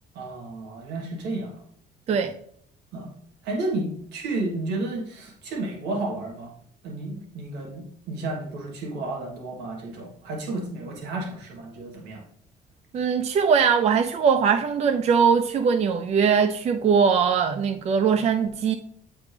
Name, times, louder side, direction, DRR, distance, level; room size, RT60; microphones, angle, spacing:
voice 1, 0.1-1.5 2.9-3.1 3.4-6.5 6.8-12.2, right 2 dB, 85° right, 1.4 m, -32 dB
voice 2, 12.9-18.8, right 6 dB, 40° right, 0.4 m, -21 dB
9.4 x 3.5 x 3.2 m
cardioid pair, 110°, 17 cm